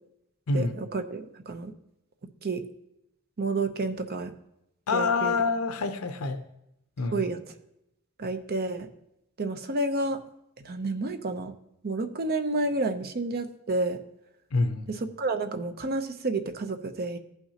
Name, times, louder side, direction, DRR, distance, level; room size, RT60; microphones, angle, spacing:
voice 1, 0.5-1.7 2.4-2.6 3.4-4.3 4.9-5.3 7.1-7.5 8.2-8.9 9.4-10.2 10.6-11.5 11.8-14.0 14.9-17.2, right 2 dB, 45° right, 8 dB, 0.6 m, -30 dB
voice 2, 4.9-6.4 7.0-7.2 14.5-14.9, left 3 dB, 80° left, 8 dB, 0.6 m, -26 dB
15.5 x 5.8 x 2.8 m, 0.84 s
head